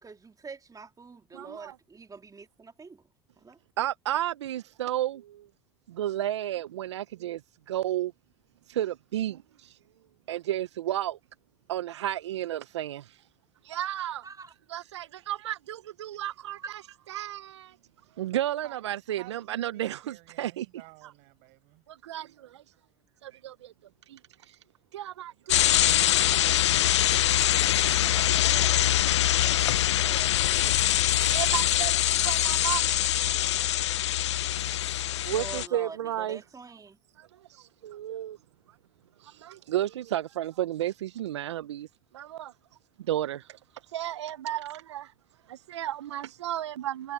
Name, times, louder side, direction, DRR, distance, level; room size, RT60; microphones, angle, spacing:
voice 1, 0.0-3.0 3.4-3.6 14.2-14.5 28.1-31.4 35.3-37.0, right 4 dB, 25° right, 2.8 m, -46 dB
voice 2, 1.3-1.7 3.8-5.4 5.9-7.4 7.7-8.1 8.7-9.4 10.3-11.2 11.7-13.0 13.7-14.2 14.7-16.8 17.1-17.7 18.2-20.7 21.0-21.1 22.0-22.3 23.2-23.7 24.1-24.2 24.9-25.6 26.3-26.5 26.9-27.3 28.4-28.7 31.3-32.0 32.2-32.8 35.2-36.4 37.8-38.4 39.4-41.9 42.1-42.5 43.1-43.4 43.9-45.1 45.5-47.1, right 12 dB, 80° right, 0.9 m, -32 dB
voice 3, 18.6-21.8, right 30 dB, 65° right, 6.9 m, -52 dB
sound 1, 25.5-35.7, left 13 dB, 80° left, 0.7 m, -24 dB
hypercardioid pair, 65°, 14 cm